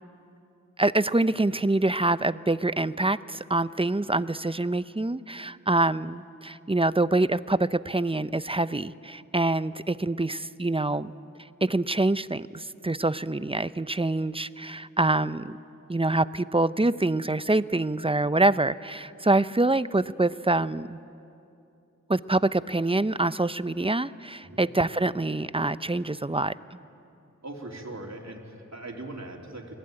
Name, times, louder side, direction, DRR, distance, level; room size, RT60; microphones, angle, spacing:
voice 1, 0.8-11.1 11.6-15.6 15.9-21.0 22.1-26.5, right 2 dB, 20° right, 15 dB, 0.6 m, -25 dB
voice 2, 27.4-29.7, right 2 dB, 60° right, 1 dB, 3.4 m, -40 dB
29.0 x 20.5 x 8.9 m, 2.6 s
wide cardioid pair, 45°, 30 cm